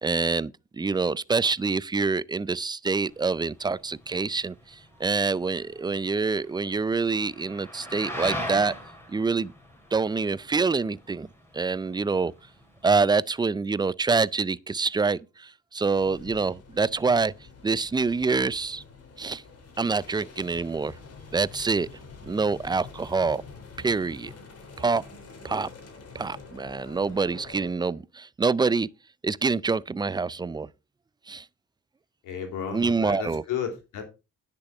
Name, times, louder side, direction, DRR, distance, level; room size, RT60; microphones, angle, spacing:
voice 1, 0.0-4.5 5.0-8.7 9.1-9.5 9.9-11.3 11.5-12.3 12.8-15.2 15.7-17.3 17.6-18.8 19.2-19.4 19.8-20.9 21.3-21.9 22.2-23.4 23.8-24.3 24.8-25.0 25.4-25.7 26.1-28.9 29.2-30.7 31.3-31.4 32.7-33.4, right 4 dB, 15° right, 0.4 m, -26 dB
sound 1, 3.1-13.0, equal, 10° left, 4.6 m, -40 dB
sound 2, 15.9-27.7, left 4 dB, 55° left, 3.5 m, -47 dB
voice 2, 32.2-34.0, left 8 dB, 90° left, 3.5 m, -33 dB
10.5 x 6.7 x 4.9 m
cardioid pair, 90°, 30 cm